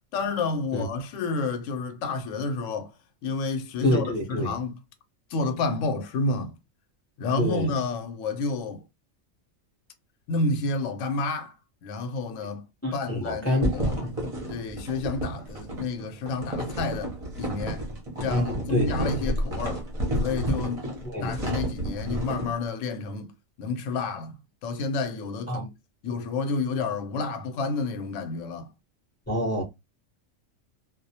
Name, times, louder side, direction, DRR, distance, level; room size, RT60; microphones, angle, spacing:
voice 1, 0.1-2.9 3.2-4.7 5.3-6.5 7.2-8.8 10.3-11.5 11.8-12.6 12.9-14.0 14.5-17.8 18.2-19.8 20.2-20.8 21.2-23.3 23.6-24.3 24.6-25.7 26.0-28.7, left 3 dB, 75° left, 0.9 m, -30 dB
voice 2, 3.8-4.5 7.4-7.7 12.8-14.1 18.3-18.9 19.2-19.4 21.0-21.3 25.5-25.6 29.3-29.6, left 1 dB, 15° left, 0.5 m, -27 dB
sound 1, 13.6-22.5, equal, 35° right, 0.6 m, -30 dB
2.3 x 2.0 x 2.7 m
omnidirectional pair, 1.4 m